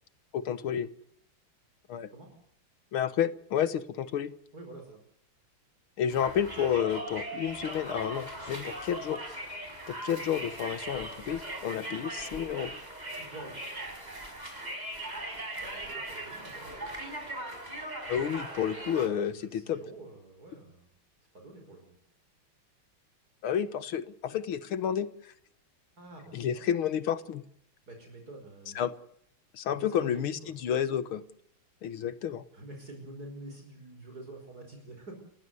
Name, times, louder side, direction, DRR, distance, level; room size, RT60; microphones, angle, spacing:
voice 1, 0.3-0.9 1.9-2.1 2.9-4.3 6.0-9.2 9.9-12.8 18.0-19.8 23.4-25.3 26.3-27.4 28.8-28.9 29.5-31.2 31.8-32.4, left 9 dB, 80° left, 14 dB, 2.1 m, -30 dB
voice 2, 4.5-5.0 11.8-11.9 13.2-13.6 15.5-16.8 19.2-20.9 21.3-21.9 26.0-26.7 27.9-28.8 29.7-30.5 32.0-32.1 32.5-35.1, right 2 dB, 45° right, 3 dB, 5.8 m, -47 dB
Conversation, 6.1-19.1, right 1 dB, 20° right, 6.0 m, -39 dB
29.5 x 16.0 x 6.9 m, 0.69 s
omnidirectional pair, 2.3 m